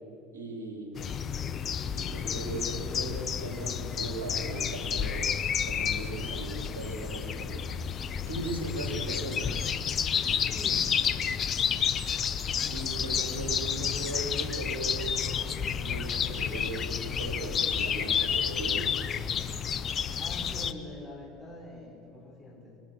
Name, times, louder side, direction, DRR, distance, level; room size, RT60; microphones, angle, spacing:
voice 1, 0.3-1.1 1.9-5.2 5.6-7.6 8.3-9.5 12.7-15.3 15.8-18.8, right 2 dB, 85° right, 1 dB, 4.5 m, -38 dB
sound 1, 1.0-20.7, left 7 dB, 40° left, 1.1 m, -30 dB
voice 2, 10.5-11.0 20.1-22.8, left 1 dB, 10° left, -2 dB, 5.4 m, -44 dB
25.5 x 21.5 x 6.2 m, 2.7 s
hypercardioid pair, 80°, 0 cm